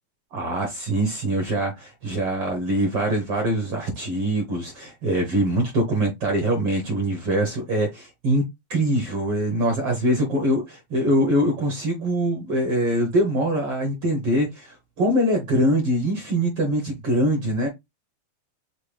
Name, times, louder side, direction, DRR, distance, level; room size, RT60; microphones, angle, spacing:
voice 1, 0.3-8.4 8.7-17.7, right 1 dB, 60° right, 1.5 m, -23 dB
5.8 x 2.7 x 3.3 m
omnidirectional pair, 4.0 m